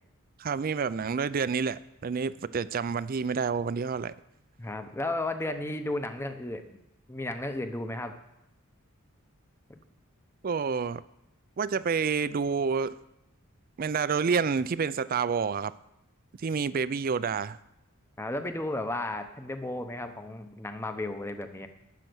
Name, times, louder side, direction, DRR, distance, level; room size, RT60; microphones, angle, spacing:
voice 1, 0.4-4.1 10.4-11.0 11.6-13.0 13.8-15.7 16.4-17.6, right 5 dB, 40° right, 17 dB, 0.4 m, -28 dB
voice 2, 4.6-6.8 7.1-8.1 9.7-9.8 18.2-21.7, left 2 dB, 10° left, 8 dB, 0.8 m, -34 dB
12.0 x 9.0 x 6.2 m, 0.85 s
head